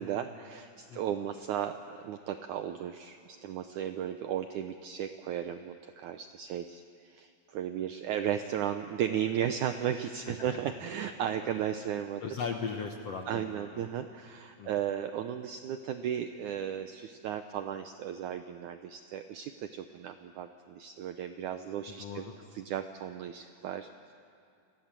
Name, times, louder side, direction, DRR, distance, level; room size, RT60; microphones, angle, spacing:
voice 1, 0.0-12.2 13.3-22.2 22.5-24.1, right 9 dB, 80° right, 8 dB, 1.7 m, -35 dB
voice 2, 12.2-13.8 14.6-14.7 21.9-22.3, left 5 dB, 70° left, 3 dB, 1.5 m, -38 dB
29.5 x 22.5 x 7.5 m, 2.3 s
omnidirectional pair, 4.4 m